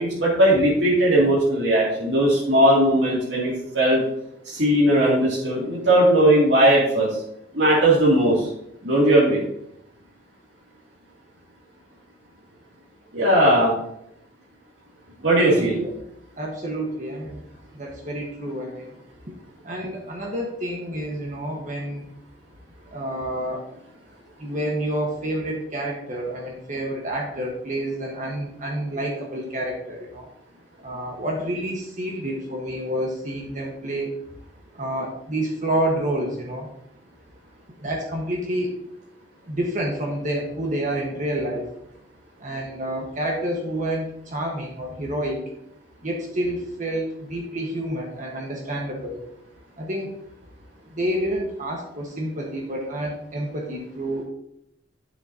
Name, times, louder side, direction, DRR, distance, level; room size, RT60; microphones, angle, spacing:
voice 1, 0.0-4.0 4.5-7.1 7.5-8.5 8.8-9.4 13.1-13.7 15.2-15.8, right 1 dB, 75° right, -6 dB, 2.7 m, -18 dB
voice 2, 15.5-15.9 16.4-17.4 17.7-18.9 19.3-19.4 19.6-22.1 22.9-23.7 24.4-30.3 30.8-34.2 34.7-36.7 37.8-38.7 39.5-41.7 42.4-45.4 46.0-49.2 49.8-50.2 50.9-54.2, right 1 dB, 45° right, -1 dB, 1.4 m, -28 dB
9.4 x 7.9 x 2.8 m, 0.75 s
head